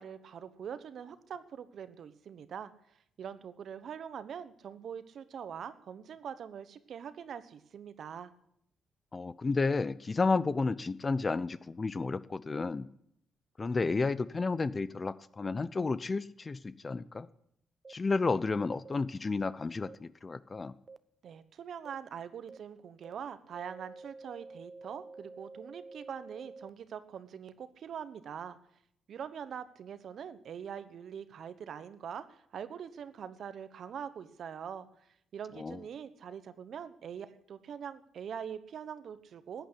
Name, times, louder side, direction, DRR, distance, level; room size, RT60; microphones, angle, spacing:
voice 1, 0.0-2.7 3.2-8.3 21.2-28.6 29.1-34.9 35.3-39.7, right 8 dB, 60° right, 13 dB, 1.1 m, -43 dB
voice 2, 9.1-12.9 13.6-17.3 17.9-20.7 35.6-35.8, left 3 dB, 30° left, 16 dB, 0.7 m, -32 dB
sound 1, 17.8-17.9 18.8-18.9 19.9-20.0 20.9-21.0 21.8-21.9 22.5-22.6 23.0-23.1 23.5-26.7, right 3 dB, 30° right, 0.6 m, -49 dB
14.5 x 9.3 x 9.9 m, 0.73 s
cardioid pair, 90°, 0 cm